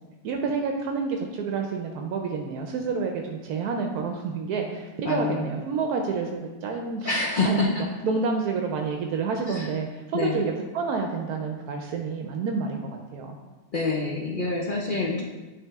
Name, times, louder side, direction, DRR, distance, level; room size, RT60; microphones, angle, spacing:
voice 1, 0.2-7.1 7.4-7.8 8.0-13.4, right 5 dB, 80° right, 2 dB, 1.1 m, -29 dB
voice 2, 5.0-5.5 7.0-7.8 9.5-9.7 10.1-10.4 13.7-15.2, left 3 dB, 55° left, -2 dB, 0.6 m, -26 dB
10.0 x 3.3 x 3.5 m, 1.2 s
omnidirectional pair, 1.6 m